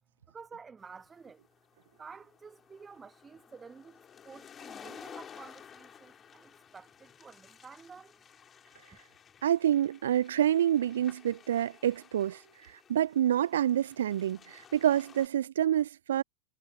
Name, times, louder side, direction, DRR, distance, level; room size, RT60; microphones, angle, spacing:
voice 1, 0.3-1.4 2.0-8.2 8.9-9.0, right 5 dB, 15° right, 1.8 m, -51 dB
sound 1, 1.0-15.3, left 8 dB, 25° left, 5.2 m, -54 dB
voice 2, 9.4-16.2, right 11 dB, 60° right, 0.3 m, -27 dB
figure-of-eight pair, 90°, 0 cm